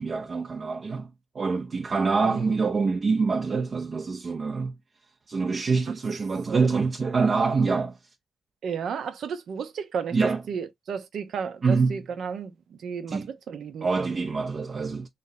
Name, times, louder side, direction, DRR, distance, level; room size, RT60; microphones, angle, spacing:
voice 1, 0.0-4.7 5.3-8.0 10.1-10.4 11.6-12.0 13.1-13.3 13.8-15.1, right 4 dB, 45° right, 0.6 m, -25 dB
voice 2, 8.6-10.2 10.5-13.9, right 6 dB, 75° right, 0.8 m, -33 dB
3.3 x 2.6 x 4.0 m
cardioid pair, 110°, 0 cm